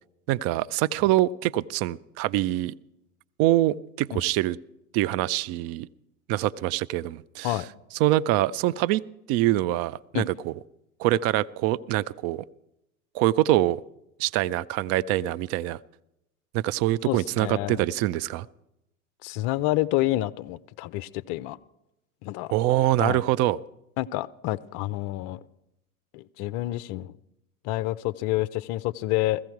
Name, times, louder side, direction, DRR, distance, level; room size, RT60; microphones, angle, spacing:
voice 1, 0.3-2.7 3.4-4.6 4.9-5.9 6.3-7.6 8.0-10.5 11.0-12.4 13.1-13.8 14.2-15.8 16.5-18.5 22.5-23.6, right 15 dB, 35° right, 19 dB, 0.4 m, -24 dB
voice 2, 17.0-17.8 19.2-21.6 22.2-22.5 23.0-23.2 24.0-25.4 26.1-27.2 27.6-29.4, left 16 dB, 45° left, 16 dB, 0.6 m, -28 dB
16.0 x 15.0 x 4.6 m, 0.87 s
hypercardioid pair, 90°, 45 cm